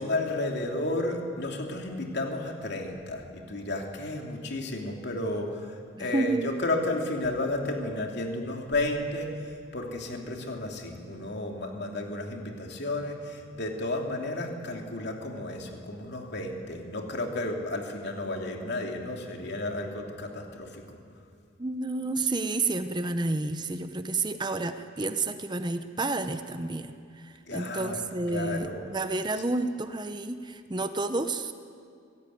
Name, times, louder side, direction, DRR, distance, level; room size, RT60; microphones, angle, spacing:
voice 1, 0.0-21.0 27.4-28.0 28.3-28.9, left 2 dB, 55° left, 2 dB, 2.9 m, -32 dB
voice 2, 6.0-6.5 21.6-31.5, right 2 dB, 20° right, 9 dB, 0.8 m, -30 dB
24.5 x 16.5 x 9.4 m, 2.3 s
head